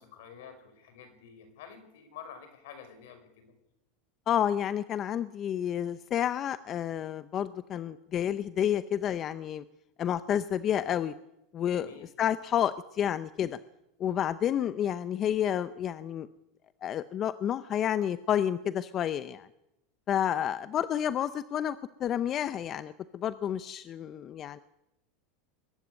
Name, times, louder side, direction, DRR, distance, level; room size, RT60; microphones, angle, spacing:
voice 1, 0.0-3.5 11.7-12.1, left 7 dB, 75° left, 8 dB, 5.4 m, -49 dB
voice 2, 4.3-9.6 10.0-11.1 11.5-13.6 14.0-16.3 16.8-19.5 20.1-24.6, left 10 dB, 35° left, 14 dB, 0.7 m, -30 dB
22.0 x 13.0 x 9.4 m, 0.88 s
supercardioid pair, 130°, 0 cm